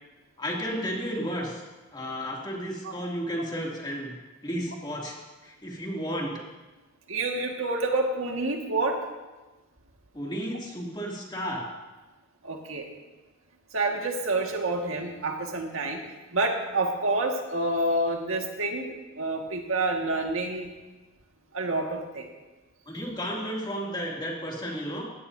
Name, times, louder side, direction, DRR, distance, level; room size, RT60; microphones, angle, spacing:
voice 1, 0.4-1.6 1.9-4.1 4.4-5.2 5.4-6.4 10.1-11.7 22.9-25.1, equal, 20° left, -3 dB, 2.7 m, -33 dB
voice 2, 7.1-9.0 12.4-12.9 13.7-16.0 16.3-20.7 21.5-22.3, right 2 dB, 85° right, 1 dB, 1.9 m, -28 dB
19.5 x 16.0 x 2.8 m, 1.2 s
head